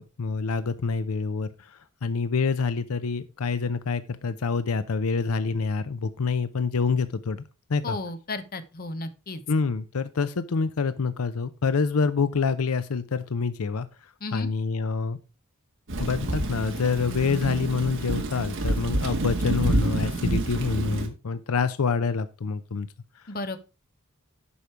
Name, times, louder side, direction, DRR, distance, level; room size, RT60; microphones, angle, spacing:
voice 1, 0.0-7.4 7.7-8.0 9.5-15.2 16.0-22.9 23.2-23.6, left 4 dB, 80° left, 13 dB, 0.6 m, -27 dB
voice 2, 7.8-9.4 14.2-14.5 23.3-23.6, left 2 dB, 45° left, 10 dB, 1.0 m, -33 dB
Thunder / Rain, 15.9-21.1, right 2 dB, 60° right, 1.8 m, -28 dB
11.0 x 5.2 x 4.6 m, 0.31 s
head